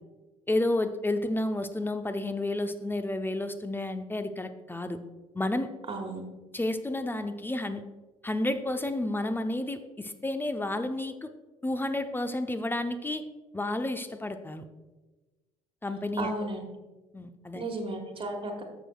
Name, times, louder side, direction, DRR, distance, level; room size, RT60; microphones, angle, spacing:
voice 1, 0.5-5.0 5.3-5.7 6.5-7.8 8.2-11.3 11.6-13.2 13.5-14.6 15.8-16.3 17.1-17.6, left 1 dB, 10° left, 9 dB, 0.7 m, -31 dB
voice 2, 5.9-6.2 16.2-16.6 17.5-18.6, right 2 dB, 30° right, 2 dB, 1.6 m, -34 dB
14.0 x 6.3 x 2.3 m, 1.2 s
figure-of-eight pair, 55°, 17 cm